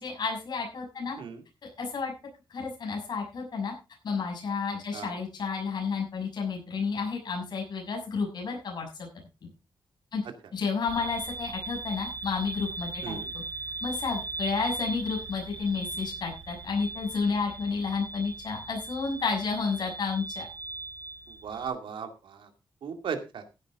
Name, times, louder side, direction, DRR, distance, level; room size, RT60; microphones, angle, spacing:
voice 1, 0.0-1.2 1.6-2.1 2.5-3.7 4.0-9.1 10.1-10.2 10.5-13.4 13.8-20.5, left 5 dB, 60° left, 0 dB, 6.4 m, -31 dB
sound 1, 10.9-21.7, right 3 dB, 60° right, 3.5 m, -38 dB
voice 2, 21.3-22.5 22.8-23.4, right 6 dB, 85° right, 6 dB, 2.3 m, -36 dB
15.5 x 9.7 x 3.7 m, 0.29 s
wide cardioid pair, 110°, 8 cm